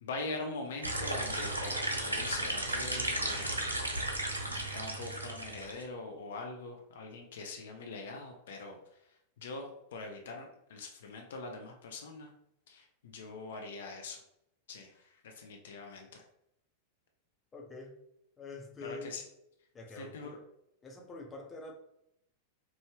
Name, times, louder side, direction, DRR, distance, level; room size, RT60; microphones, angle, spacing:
voice 1, 0.0-3.7 4.4-8.8 9.4-12.3 12.7-14.2 14.7-16.2 18.8-19.2 20.0-20.4, left 3 dB, 60° left, 3 dB, 0.6 m, -43 dB
sound 1, 0.8-5.8, right 1 dB, 80° right, 0.5 m, -34 dB
voice 2, 17.5-17.9 18.4-19.2 19.7-20.3 20.8-21.7, left 3 dB, 20° left, 0 dB, 0.9 m, -45 dB
4.7 x 2.6 x 3.2 m, 0.78 s
figure-of-eight pair, 90°, 0 cm